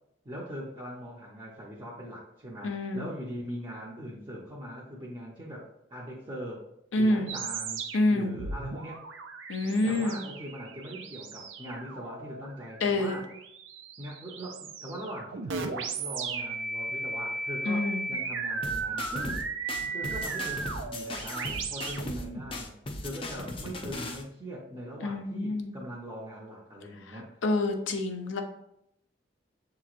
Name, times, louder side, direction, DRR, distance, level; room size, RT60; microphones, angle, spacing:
voice 1, 0.2-6.7 7.0-9.0 9.7-13.3 14.0-19.4 19.8-22.7 23.0-27.3, equal, 25° right, -5 dB, 0.6 m, -41 dB
voice 2, 2.6-3.1 6.9-7.3 7.9-8.4 9.5-10.2 12.8-13.2 17.7-18.1 25.0-25.8 27.4-28.4, left 2 dB, 80° left, 5 dB, 0.6 m, -27 dB
sound 1, 7.3-22.6, right 4 dB, 85° right, 0.5 m, -36 dB
sound 2, 18.6-19.4 19.7-22.2 22.5-24.2, left 2 dB, 30° left, 0.5 m, -37 dB
6.9 x 2.9 x 2.5 m, 0.78 s
head